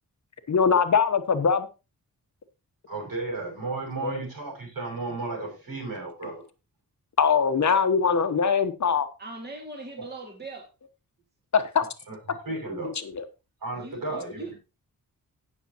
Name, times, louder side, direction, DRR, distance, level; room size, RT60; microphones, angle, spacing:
voice 1, 0.5-1.7 4.0-4.2 7.2-9.1 11.5-11.9 13.0-13.2, left 6 dB, 50° left, 1.0 m, -22 dB
voice 2, 2.9-6.4 10.0-10.1 12.1-12.2 12.4-12.9 13.6-14.5, right 3 dB, 65° right, 6.6 m, -34 dB
voice 3, 9.2-10.7 13.8-14.5, right 2 dB, 30° right, 2.0 m, -40 dB
17.0 x 6.5 x 2.9 m
wide cardioid pair, 140°, 36 cm